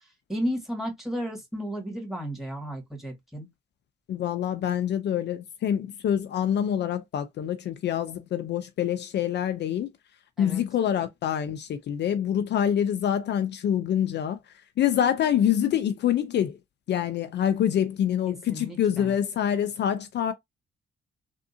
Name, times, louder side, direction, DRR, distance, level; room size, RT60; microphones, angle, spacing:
voice 1, 0.3-3.5 10.4-10.6 18.3-19.1, equal, ahead, 1.9 m, -33 dB
voice 2, 4.1-9.9 10.4-14.4 14.8-16.6 16.9-20.3, left 9 dB, 60° left, 0.5 m, -26 dB
3.5 x 2.6 x 2.7 m
cardioid pair, 90°, 20 cm